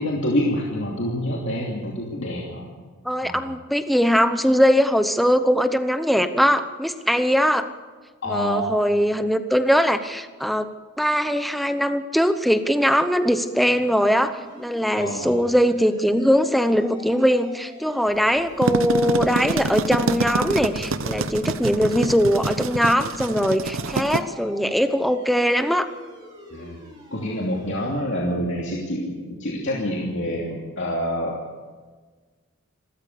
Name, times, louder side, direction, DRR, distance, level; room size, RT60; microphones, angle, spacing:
voice 1, 0.0-2.7 3.2-3.5 8.2-8.7 15.0-15.4 26.5-26.8 27.1-31.4, equal, 55° left, -2 dB, 2.8 m, -27 dB
voice 2, 3.0-7.7 8.3-10.7 11.0-25.9, equal, ahead, 9 dB, 0.9 m, -21 dB
sound 1, 13.6-28.0, equal, 20° right, 5.0 m, -46 dB
sound 2, 18.4-24.2, right 3 dB, 65° right, 0.9 m, -26 dB
27.5 x 13.5 x 6.9 m, 1.4 s
head